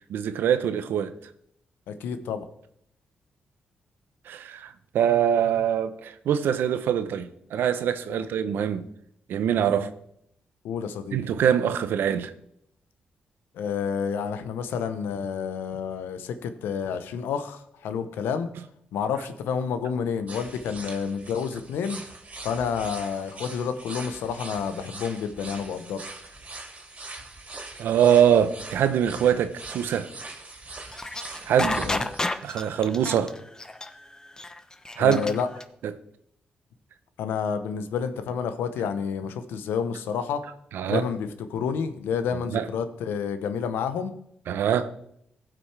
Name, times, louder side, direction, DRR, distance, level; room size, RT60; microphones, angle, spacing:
voice 1, 0.1-1.1 4.3-4.7 4.9-8.9 9.3-9.9 11.1-12.3 27.8-30.1 31.5-31.9 32.4-33.3 35.0-35.2 40.7-41.0 42.5-42.6 44.5-44.9, right 9 dB, 80° right, 0.7 m, -23 dB
voice 2, 1.9-2.5 8.1-8.3 9.7-9.9 10.6-11.2 13.5-18.5 18.9-22.0 22.4-26.0 31.8-32.1 35.0-35.5 37.2-40.4 40.9-44.1, left 6 dB, 85° left, 0.8 m, -29 dB
sound 1, 20.3-32.2, right 3 dB, 45° right, 2.7 m, -42 dB
sound 2, 30.9-35.6, left 2 dB, 20° left, 0.9 m, -30 dB
16.0 x 6.1 x 3.3 m
supercardioid pair, 60°, 4 cm